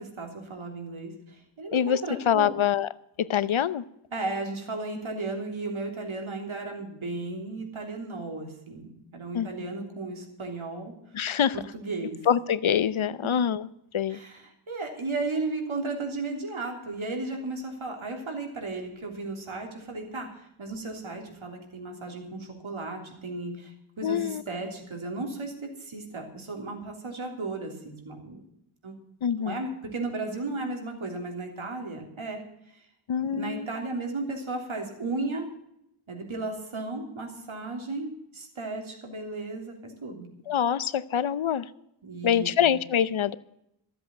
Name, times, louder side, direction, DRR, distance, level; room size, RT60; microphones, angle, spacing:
voice 1, 0.0-2.6 4.1-10.9 11.5-12.2 13.0-13.3 14.1-28.4 28.8-29.0 29.4-32.4 33.2-35.5 36.1-40.3 42.0-42.8, right 3 dB, 80° right, 2 dB, 3.4 m, -35 dB
voice 2, 2.3-2.9 3.3-3.8 9.3-9.5 11.1-11.5 12.3-13.6 13.9-14.2 24.0-24.4 29.2-29.6 33.1-33.7 40.5-41.6 42.2-43.4, left 9 dB, 75° left, 17 dB, 0.7 m, -25 dB
14.0 x 7.9 x 7.7 m, 0.78 s
wide cardioid pair, 60°, 48 cm